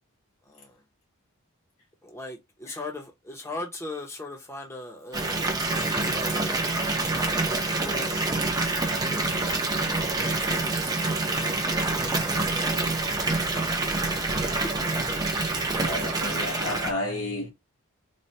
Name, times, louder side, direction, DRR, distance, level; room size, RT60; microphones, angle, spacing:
voice 1, 0.5-0.8 2.0-8.2 8.8-9.6 10.1-13.8 14.1-14.9, left 1 dB, 10° left, 0.8 m, -40 dB
Water tap faucet / Bathtub (filling or washing) / Fill (with liquid), 5.1-16.9, right 2 dB, 20° right, 0.7 m, -26 dB
voice 2, 15.8-17.5, left 1 dB, 75° left, 1.7 m, -31 dB
4.2 x 2.3 x 3.2 m
head